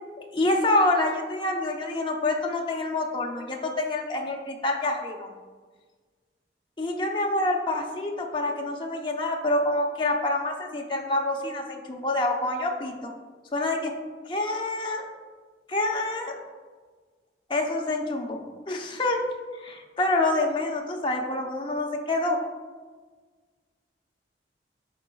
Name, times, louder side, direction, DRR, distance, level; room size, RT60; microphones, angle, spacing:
voice 1, 0.3-5.3 6.8-13.1 13.5-13.9 14.2-15.1 15.7-16.3 17.5-18.4 18.7-19.2 19.6-22.4, left 2 dB, 25° left, 0 dB, 0.7 m, -27 dB
11.5 x 4.2 x 2.3 m, 1.4 s
head